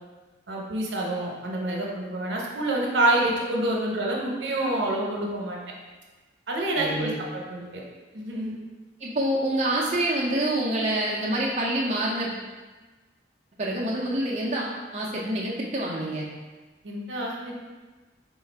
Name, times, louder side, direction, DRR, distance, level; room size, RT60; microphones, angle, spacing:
voice 1, 0.5-5.6 6.5-7.8 8.1-8.6 16.8-17.6, right 1 dB, 85° right, -2 dB, 0.8 m, -27 dB
voice 2, 6.8-7.1 9.0-12.4 13.6-16.3, right 1 dB, 35° right, -4 dB, 0.5 m, -27 dB
3.6 x 2.4 x 4.4 m, 1.3 s
head